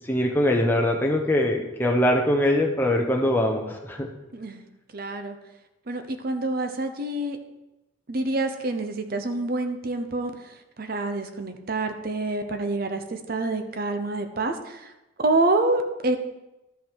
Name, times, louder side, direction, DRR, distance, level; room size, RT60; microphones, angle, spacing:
voice 1, 0.1-4.1, left 1 dB, 10° left, 1 dB, 0.8 m, -22 dB
voice 2, 4.9-5.4 5.9-7.4 8.1-14.9 15.2-16.2, right 2 dB, 45° right, 7 dB, 0.7 m, -27 dB
12.0 x 5.3 x 4.6 m, 0.99 s
head